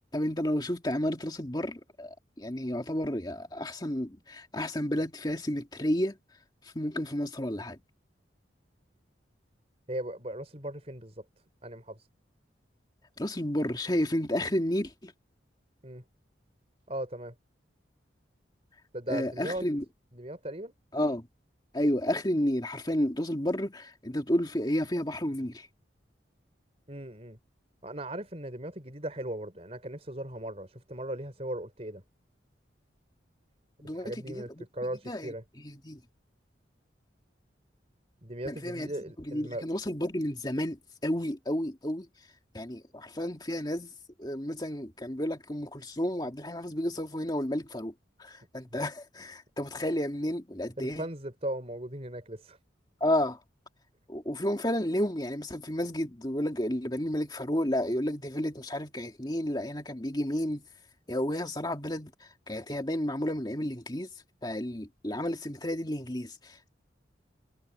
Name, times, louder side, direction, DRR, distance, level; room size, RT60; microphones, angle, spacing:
voice 1, 0.1-6.2 6.7-7.8 13.2-15.1 19.1-19.8 20.9-21.3 21.7-25.7 33.8-34.7 35.1-36.0 38.5-38.9 39.2-42.1 42.5-43.9 44.2-47.9 48.2-51.1 53.0-53.4 54.1-60.6 61.1-62.1 62.5-64.1 64.4-66.3, left 1 dB, 20° left, 2.3 m, -31 dB
voice 2, 9.9-11.2 11.6-12.1 15.8-16.0 16.9-17.3 18.9-19.6 20.1-20.7 26.9-27.4 27.8-32.0 33.9-35.4 38.2-39.7 50.8-52.6, right 1 dB, 35° right, 4.4 m, -38 dB
head